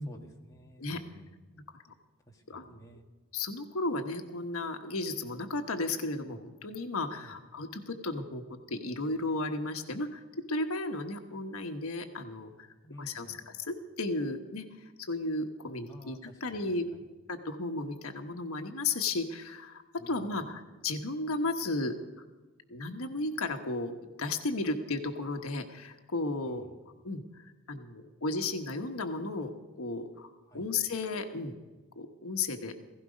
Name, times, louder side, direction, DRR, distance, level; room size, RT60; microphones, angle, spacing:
voice 1, 0.1-1.4 2.3-3.1 7.2-7.4 12.8-13.4 15.9-17.1 20.0-20.5 26.4-26.8 30.5-30.7, equal, 15° left, 0 dB, 1.6 m, -52 dB
voice 2, 2.5-2.8 3.3-10.2 10.5-12.7 13.0-14.7 15.0-16.9 17.3-22.2 22.7-26.6 27.0-31.6 31.9-32.8, left 2 dB, 75° left, 5 dB, 1.3 m, -34 dB
16.5 x 16.0 x 5.2 m, 1.2 s
head